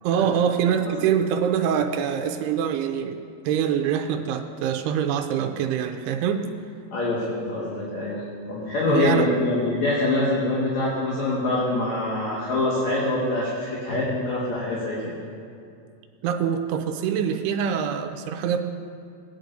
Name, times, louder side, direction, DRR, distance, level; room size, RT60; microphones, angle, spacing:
voice 1, 0.0-3.2 3.5-6.4 8.9-9.3 16.2-18.6, right 8 dB, 90° right, 6 dB, 2.6 m, -24 dB
voice 2, 6.9-8.2 8.5-15.1, left 2 dB, 55° left, -6 dB, 2.5 m, -24 dB
18.0 x 10.0 x 2.7 m, 2.4 s
omnidirectional pair, 4.6 m